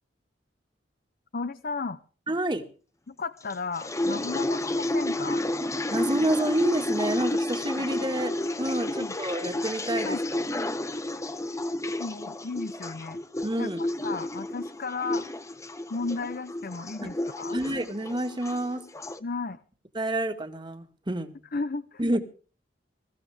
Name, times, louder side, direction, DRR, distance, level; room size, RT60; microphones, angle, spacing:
voice 1, 1.3-2.0 3.1-5.4 7.8-7.9 9.0-9.1 10.0-10.2 12.0-13.2 13.6-15.3 15.9-17.6 19.2-19.6 21.5-22.0, left 4 dB, 55° left, 12 dB, 0.7 m, -34 dB
voice 2, 2.3-2.6 5.9-8.3 8.6-10.2 13.4-13.8 17.0-17.1 17.5-18.8 20.0-21.3 22.0-22.2, right 1 dB, 25° right, 6 dB, 1.9 m, -28 dB
sound 1, 3.5-19.2, left 1 dB, 15° left, 0.9 m, -31 dB
22.0 x 15.0 x 3.6 m, 0.38 s
head